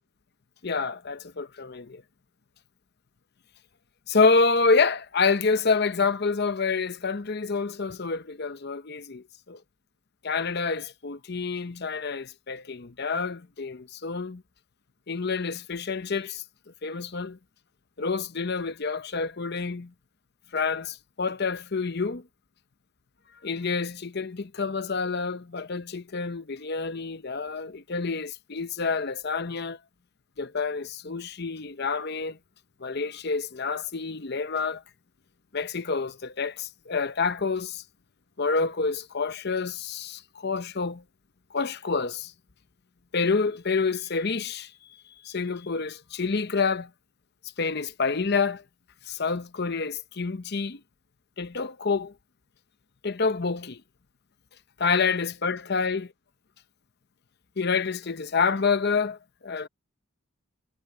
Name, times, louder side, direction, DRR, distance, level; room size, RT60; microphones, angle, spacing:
voice 1, 0.6-2.0 4.1-9.6 10.2-14.4 15.1-16.4 16.8-17.4 18.0-19.9 20.5-22.2 23.4-29.8 30.4-32.4 32.8-34.8 35.5-37.8 38.4-41.0 41.5-42.3 43.1-44.7 45.2-46.9 47.6-48.6 49.1-50.8 51.4-52.1 53.0-53.8 54.8-56.1 57.6-59.7, left 4 dB, 50° left, 0.8 m, -28 dB
head